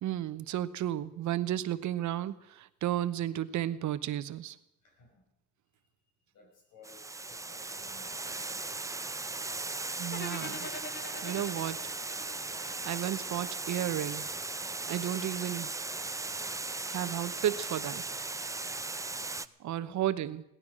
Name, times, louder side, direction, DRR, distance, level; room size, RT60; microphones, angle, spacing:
voice 1, 0.0-4.6 10.0-10.7 11.2-11.9 12.6-14.3 14.9-15.7 16.9-18.0 19.6-20.4, right 12 dB, 70° right, 14 dB, 0.9 m, -33 dB
voice 2, 4.8-5.3 6.3-8.2 19.3-20.0, left 3 dB, 80° left, 1 dB, 5.5 m, -59 dB
Water, 6.8-19.5, right 3 dB, 10° right, 0.5 m, -37 dB
sound 1, 10.1-13.3, left 3 dB, 35° left, 1.4 m, -44 dB
17.0 x 12.0 x 6.2 m, 0.83 s
cardioid pair, 90°, 30 cm